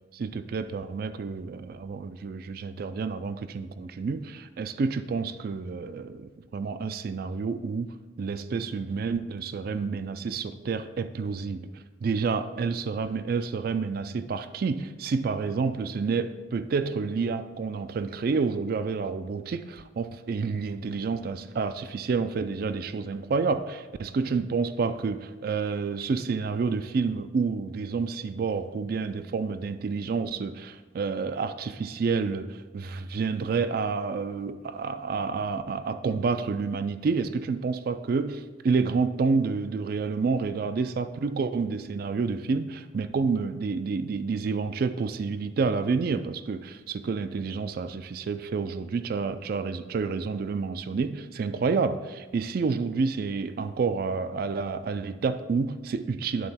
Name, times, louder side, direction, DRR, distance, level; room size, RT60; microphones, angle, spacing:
voice 1, 0.1-11.6 12.0-56.5, right 4 dB, 50° right, 12 dB, 0.3 m, -29 dB
11.0 x 3.8 x 4.2 m, 1.3 s
head